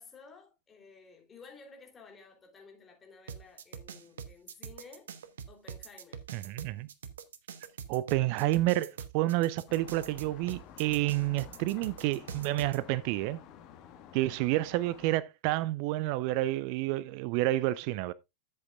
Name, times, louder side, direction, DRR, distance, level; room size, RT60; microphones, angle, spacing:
voice 1, 0.0-5.1 5.5-6.2, left 4 dB, 20° left, 3.3 m, -54 dB
sound 1, 3.3-12.8, right 7 dB, 65° right, 1.0 m, -44 dB
voice 2, 6.3-6.9 7.9-13.4 14.1-18.1, right 17 dB, 45° right, 0.4 m, -29 dB
sound 2, 9.7-15.2, left 9 dB, 40° left, 1.6 m, -51 dB
11.5 x 7.8 x 2.5 m
figure-of-eight pair, 90°, 0 cm